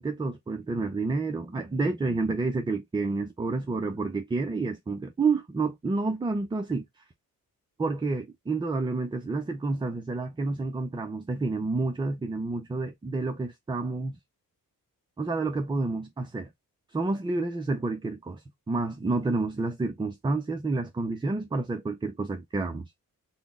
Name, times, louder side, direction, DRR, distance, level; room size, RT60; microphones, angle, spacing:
voice 1, 0.0-6.9 7.8-14.2 15.2-16.5 16.9-22.9, right 3 dB, 15° right, 0.3 m, -29 dB
4.0 x 2.0 x 3.5 m
wide cardioid pair, 165°, 36 cm